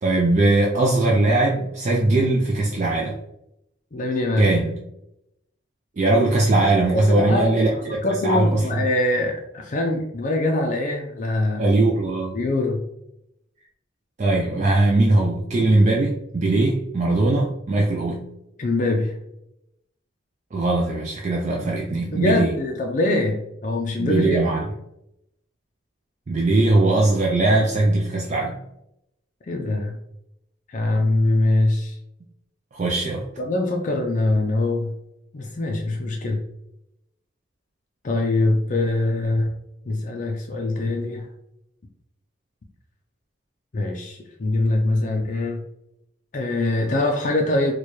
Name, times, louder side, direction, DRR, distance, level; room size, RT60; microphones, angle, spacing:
voice 1, 0.0-3.2 4.4-4.8 6.0-8.7 11.6-12.4 14.2-18.3 20.5-22.6 24.0-24.7 26.3-28.6 32.7-33.3, right 2 dB, 35° right, -1 dB, 0.4 m, -20 dB
voice 2, 3.9-4.5 7.1-11.6 12.3-12.8 18.6-19.1 22.1-24.4 29.4-30.0 30.7-32.0 33.4-34.9 35.3-36.4 38.0-39.5 39.9-41.3 43.7-45.6 46.3-47.7, left 2 dB, 40° left, 1 dB, 0.4 m, -23 dB
4.4 x 2.3 x 3.0 m, 0.82 s
head